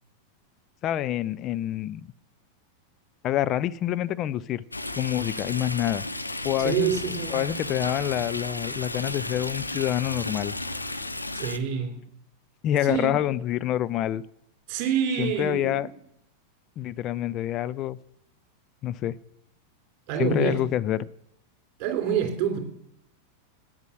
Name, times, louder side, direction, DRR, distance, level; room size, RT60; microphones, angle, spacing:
voice 1, 0.8-2.1 3.2-4.6 5.0-6.0 6.4-7.0 7.3-10.6 12.6-14.2 15.2-15.9 16.8-18.0 18.8-19.2 20.2-21.0, left 12 dB, 35° left, 0.4 m, -27 dB
Stream, 4.7-11.6, left 2 dB, 85° left, 0.6 m, -33 dB
voice 2, 6.6-7.4 11.3-11.9 12.8-13.1 14.7-15.9 20.1-20.6 21.8-22.6, right 8 dB, 40° right, 3.1 m, -27 dB
8.9 x 8.3 x 7.5 m
figure-of-eight pair, 90°, 0 cm